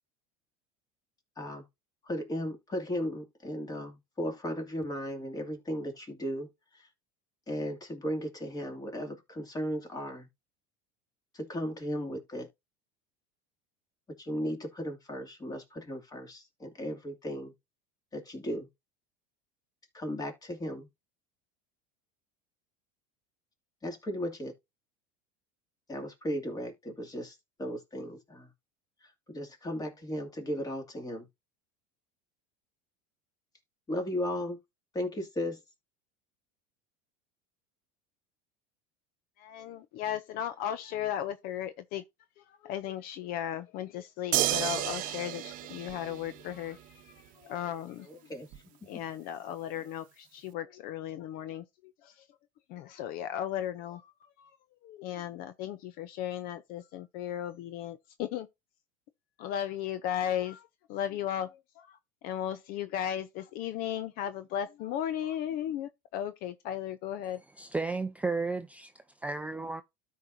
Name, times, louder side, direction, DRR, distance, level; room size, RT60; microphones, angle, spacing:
voice 1, 1.4-1.7 2.0-6.9 7.5-10.3 11.3-12.5 14.1-17.5 18.1-18.7 19.9-20.9 23.8-24.5 25.9-28.5 29.0-31.3 33.9-34.6 34.9-35.6 48.0-48.5 48.9-49.0, equal, 20° left, 2.5 m, -36 dB
voice 2, 39.4-42.0 42.6-47.1 47.4-48.1 48.9-51.6 52.0-52.1 52.7-54.1 54.4-54.5 54.8-58.5 59.4-62.0 62.2-67.4, left 10 dB, 55° left, 0.6 m, -36 dB
sound 1, 44.3-46.8 48.5-48.6, right 14 dB, 50° right, 0.8 m, -31 dB
voice 3, 67.5-69.8, right 3 dB, 10° right, 0.4 m, -33 dB
13.0 x 4.7 x 2.7 m
supercardioid pair, 110°, 18 cm